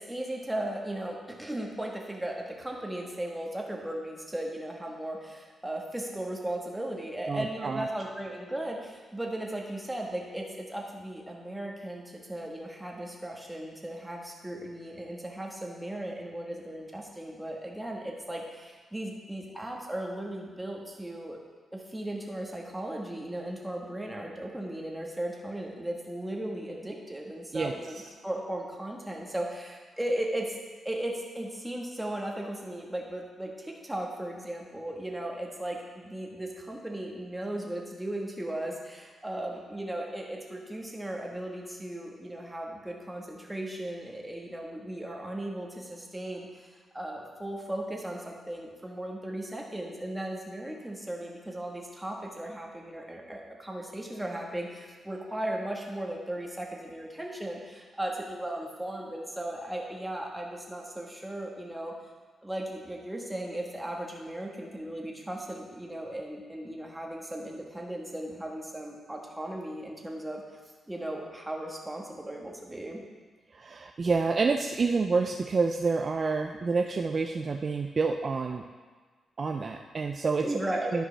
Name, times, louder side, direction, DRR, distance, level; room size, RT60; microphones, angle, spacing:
voice 1, 0.0-21.4 21.7-30.6 30.8-61.9 62.4-70.4 70.9-73.0 80.4-81.1, right 1 dB, 10° right, 0 dB, 1.4 m, -36 dB
voice 2, 7.3-7.9 27.5-27.7 73.5-78.6 79.4-80.5 80.9-81.1, right 4 dB, 45° right, 4 dB, 0.4 m, -28 dB
11.0 x 5.1 x 3.3 m, 1.4 s
cardioid pair, 80°, 0 cm